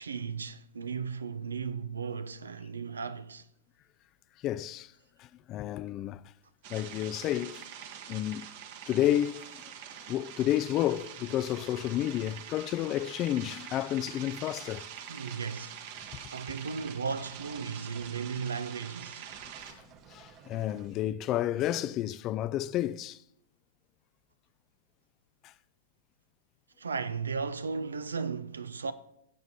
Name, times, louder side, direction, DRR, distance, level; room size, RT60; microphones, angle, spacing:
voice 1, 0.0-3.5 15.1-15.8 16.3-19.3 26.8-28.9, right 5 dB, 85° right, 0.5 m, -35 dB
voice 2, 4.4-4.9 5.2-6.2 6.7-7.6 8.1-8.5 8.9-9.5 10.1-14.9 19.7-19.8 20.1-23.2 25.4-25.5, left 12 dB, 35° left, 0.3 m, -31 dB
sound 1, 6.6-19.7, right 8 dB, 55° right, 1.2 m, -45 dB
sound 2, 15.9-16.3 16.6-18.2 18.5-18.7 19.0-21.0, right 7 dB, 35° right, 0.8 m, -56 dB
17.0 x 7.9 x 2.8 m
hypercardioid pair, 105°, 0 cm